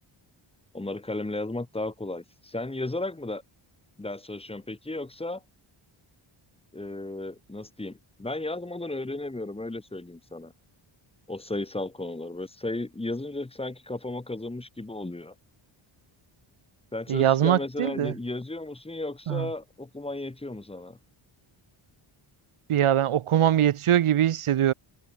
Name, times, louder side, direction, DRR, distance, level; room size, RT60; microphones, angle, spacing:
voice 1, 0.7-3.4 4.0-5.4 6.7-10.5 11.3-15.3 16.9-21.0, left 2 dB, 10° left, 6.5 m, -34 dB
voice 2, 17.1-18.1 19.3-19.5 22.7-24.7, right 11 dB, 85° right, 3.5 m, -22 dB
wide cardioid pair, 180°, 49 cm